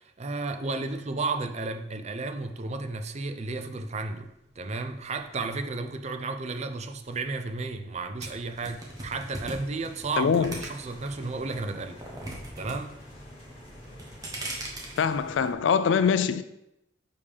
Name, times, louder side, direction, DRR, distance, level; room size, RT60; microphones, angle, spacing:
voice 1, 0.0-4.3 4.6-12.0 12.6-12.9, right 3 dB, 35° right, 0.5 m, -33 dB
sound 1, 3.9-15.5, equal, 30° left, 1.8 m, -50 dB
sound 2, 8.2-11.1 11.5-12.8 13.0-13.5 13.9-15.0, right 1 dB, 20° right, 1.2 m, -38 dB
voice 2, 10.2-10.5 15.0-16.4, left 6 dB, 80° left, 0.4 m, -23 dB
6.8 x 5.1 x 3.4 m
head